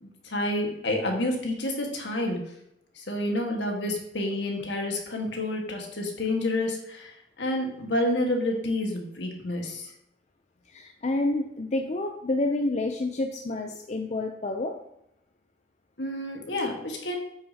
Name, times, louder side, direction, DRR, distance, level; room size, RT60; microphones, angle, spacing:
voice 1, 0.0-2.5 3.0-9.9 16.0-17.2, left 1 dB, 70° left, 2 dB, 1.6 m, -29 dB
voice 2, 10.7-14.8, left 2 dB, 40° left, 3 dB, 0.5 m, -29 dB
8.4 x 6.3 x 2.9 m, 0.81 s
head